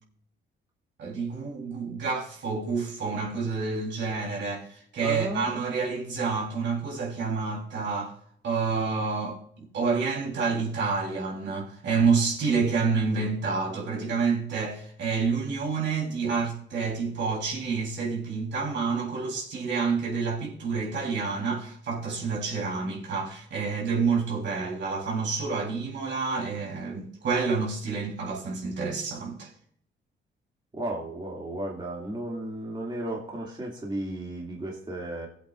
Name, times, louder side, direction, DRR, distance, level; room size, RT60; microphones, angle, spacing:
voice 1, 1.0-8.1 8.4-29.5, right 4 dB, 65° right, 3.5 m, -28 dB
voice 2, 5.0-5.5 30.7-35.3, right 1 dB, 25° right, 2.3 m, -34 dB
17.5 x 8.0 x 2.5 m
cardioid pair, 90°, 20 cm